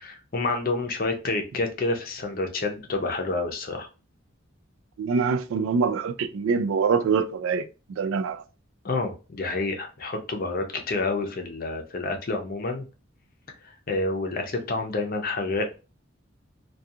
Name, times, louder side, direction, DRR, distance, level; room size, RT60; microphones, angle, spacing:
voice 1, 0.0-3.9 8.8-12.8 13.9-15.8, left 3 dB, 45° left, 0.5 m, -28 dB
voice 2, 5.0-8.4, right 5 dB, 85° right, 0.3 m, -25 dB
2.4 x 2.3 x 2.6 m
head